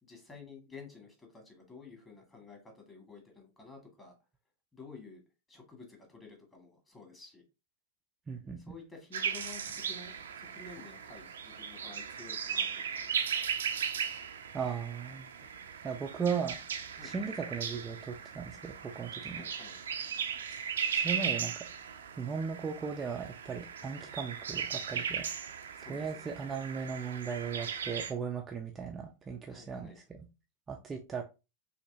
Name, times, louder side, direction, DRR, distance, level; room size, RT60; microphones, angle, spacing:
voice 1, 0.0-4.2 4.7-5.2 5.5-7.4 8.6-13.3 16.9-17.3 19.2-19.8 25.7-26.3 29.5-30.0, left 4 dB, 15° left, 1.9 m, -52 dB
voice 2, 8.3-8.6 14.5-15.3 15.8-16.6 17.0-19.4 20.5-21.5 22.2-25.3 25.9-30.2 30.7-31.2, right 6 dB, 20° right, 0.6 m, -37 dB
sound 1, 9.1-28.1, right 7 dB, 65° right, 0.6 m, -37 dB
6.1 x 2.8 x 2.7 m
figure-of-eight pair, 90°, 0 cm